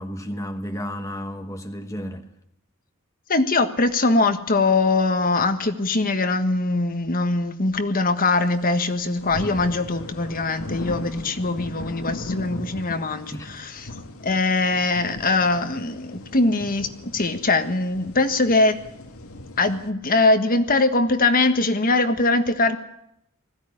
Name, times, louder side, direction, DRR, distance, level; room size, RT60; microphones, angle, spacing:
voice 1, 0.0-2.3 13.3-13.5, equal, 15° left, 1.3 m, -32 dB
voice 2, 3.3-13.9 14.2-18.8 19.6-22.8, left 3 dB, 40° left, 1.5 m, -22 dB
sound 1, 8.6-8.7 8.8-19.9, left 1 dB, 75° left, 2.1 m, -38 dB
20.5 x 16.0 x 10.0 m
head